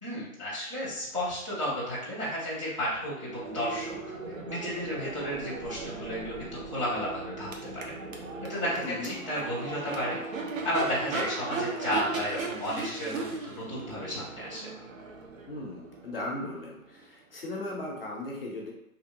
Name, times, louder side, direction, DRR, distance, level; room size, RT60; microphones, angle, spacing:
voice 1, 0.0-4.1 4.5-7.5 7.7-7.9 8.4-10.2 10.6-14.7, equal, 20° right, -10 dB, 0.5 m, -33 dB
Crowd / Race car auto racing / Accelerating revving vroom, 3.2-17.1, right 3 dB, 65° right, 0.7 m, -38 dB
voice 2, 8.8-9.1 15.5-18.7, left 1 dB, 40° left, -2 dB, 0.6 m, -37 dB
2.9 x 2.6 x 2.6 m, 0.86 s
hypercardioid pair, 165°, 44 cm